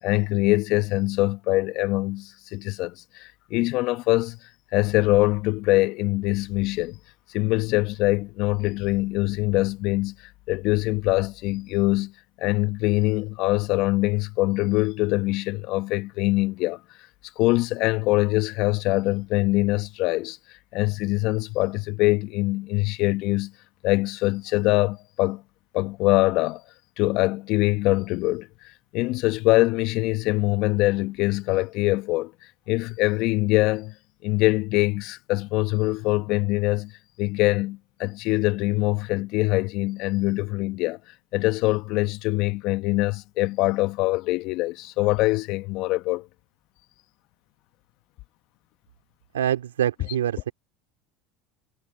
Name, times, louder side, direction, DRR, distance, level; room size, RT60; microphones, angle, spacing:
voice 1, 0.0-4.4 4.7-7.0 7.3-12.1 12.4-16.8 17.4-20.4 20.7-23.5 23.8-25.4 25.7-26.6 27.0-28.5 28.9-32.3 32.7-33.9 34.2-36.9 37.2-41.0 41.3-46.3, left 20 dB, 60° left, 1.3 m, -23 dB
voice 2, 49.3-50.5, right 10 dB, 85° right, 3.0 m, -25 dB
hypercardioid pair, 80°, 0 cm